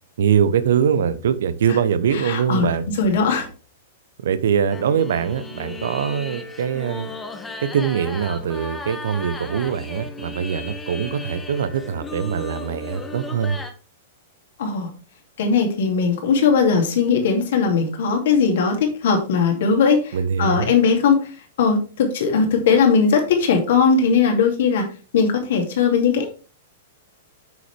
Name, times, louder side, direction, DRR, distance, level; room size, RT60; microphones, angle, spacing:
voice 1, 0.2-2.8 4.2-7.1 7.6-13.6 20.1-20.8, right 8 dB, 60° right, 0.8 m, -22 dB
voice 2, 2.3-2.7 3.0-3.5 14.6-14.9 15.4-21.3 21.6-24.9 25.1-26.3, left 5 dB, 55° left, 2.4 m, -19 dB
sound 1, 4.7-13.7, left 2 dB, 10° left, 1.2 m, -35 dB
9.0 x 6.4 x 3.4 m
figure-of-eight pair, 100°, 0 cm